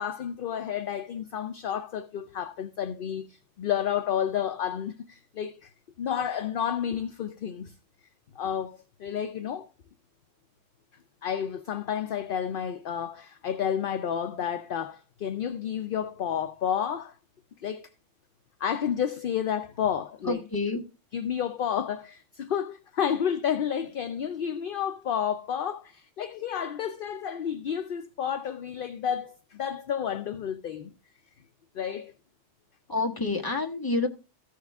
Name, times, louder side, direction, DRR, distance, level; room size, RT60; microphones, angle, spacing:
voice 1, 0.0-5.7 6.0-7.7 8.4-9.7 11.2-17.1 17.6-17.9 18.6-20.4 21.1-30.9 31.7-32.1, left 8 dB, 55° left, 0.7 m, -31 dB
voice 2, 20.2-20.8 32.9-34.1, left 3 dB, 20° left, 1.3 m, -28 dB
14.5 x 6.4 x 3.5 m
omnidirectional pair, 1.3 m